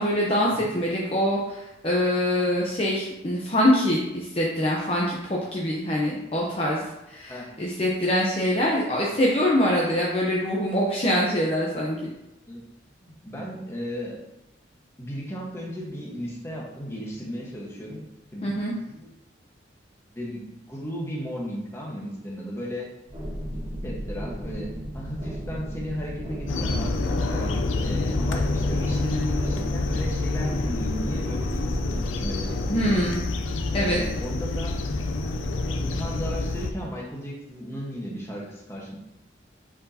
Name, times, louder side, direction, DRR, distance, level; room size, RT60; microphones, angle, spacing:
voice 1, 0.0-12.1 18.4-18.7 32.7-33.2 33.7-34.0, equal, 30° left, -4 dB, 0.8 m, -24 dB
voice 2, 13.0-14.2 15.0-18.0 18.3-18.5 18.8-19.1 20.1-22.9 23.5-27.5 27.8-32.9 33.7-34.7 35.2-35.3 35.7-39.0, equal, 15° left, -3 dB, 1.3 m, -35 dB
sound 1, 23.1-32.5, equal, 25° right, 1.8 m, -35 dB
sound 2, 26.5-36.7, left 2 dB, 90° left, 0.6 m, -27 dB
8.4 x 4.6 x 2.8 m, 0.92 s
head